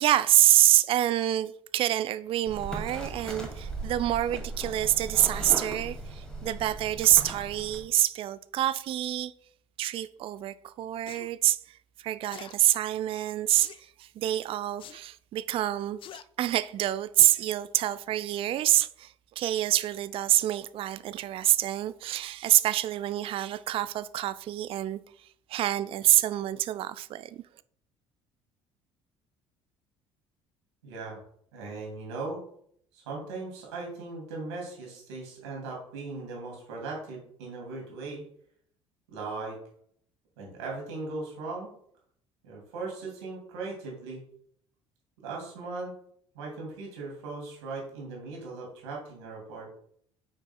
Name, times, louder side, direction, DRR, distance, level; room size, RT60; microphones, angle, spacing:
voice 1, 0.0-9.3 9.8-25.0 25.5-27.4, right 13 dB, 40° right, 0.3 m, -26 dB
sound 1, 2.5-7.8, right 2 dB, 5° left, 2.3 m, -38 dB
sound 2, 11.1-11.3 12.3-12.6 13.6-13.9 14.8-15.0 16.0-16.2 17.2-17.5 17.9-18.0, left 10 dB, 35° left, 0.4 m, -45 dB
voice 2, 30.8-31.2 31.5-32.4 32.9-38.2 39.1-39.6 40.4-41.7 42.4-44.2 45.2-45.9 46.3-49.7, right 3 dB, 70° right, 2.7 m, -38 dB
8.8 x 6.1 x 2.3 m
figure-of-eight pair, 55°, 15 cm